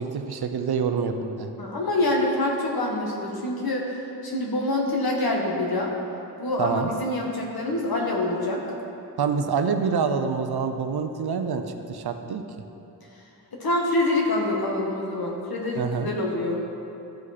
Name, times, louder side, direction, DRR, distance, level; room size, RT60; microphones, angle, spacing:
voice 1, 0.0-1.5 6.6-6.9 9.2-12.4 15.8-16.1, right 6 dB, 70° right, 6 dB, 0.7 m, -26 dB
voice 2, 1.6-5.9 6.4-8.6 13.5-16.6, left 2 dB, 60° left, -1 dB, 1.5 m, -26 dB
14.0 x 5.0 x 4.2 m, 2.8 s
wide cardioid pair, 115°, 40 cm